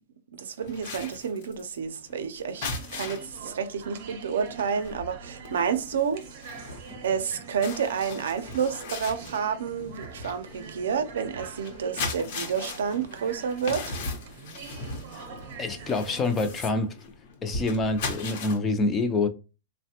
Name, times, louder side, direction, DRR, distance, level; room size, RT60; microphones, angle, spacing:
voice 1, 0.3-6.5 7.0-14.0, right 7 dB, 85° right, 0.5 m, -30 dB
sound 1, 0.6-3.4 3.8-4.0 4.3-18.6, left 3 dB, 50° left, 0.7 m, -38 dB
sound 2, 2.6-16.6, right 5 dB, 50° right, 0.7 m, -45 dB
voice 2, 15.6-17.0 17.4-19.3, left 3 dB, 15° left, 0.3 m, -26 dB
3.2 x 2.1 x 2.8 m
supercardioid pair, 160°, 0 cm